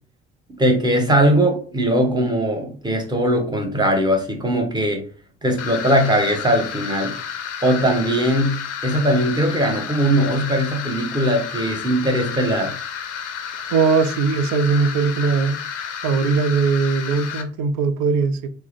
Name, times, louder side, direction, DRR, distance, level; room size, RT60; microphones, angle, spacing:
voice 1, 0.6-5.0 5.4-7.2 7.6-8.6 8.8-12.8, equal, 10° right, 1.0 m, -20 dB
sound 1, 5.6-17.4, left 7 dB, 80° left, 0.5 m, -31 dB
voice 2, 13.7-15.6 16.0-18.5, right 5 dB, 55° right, 0.5 m, -20 dB
3.4 x 2.1 x 3.1 m
figure-of-eight pair, 55°, 34 cm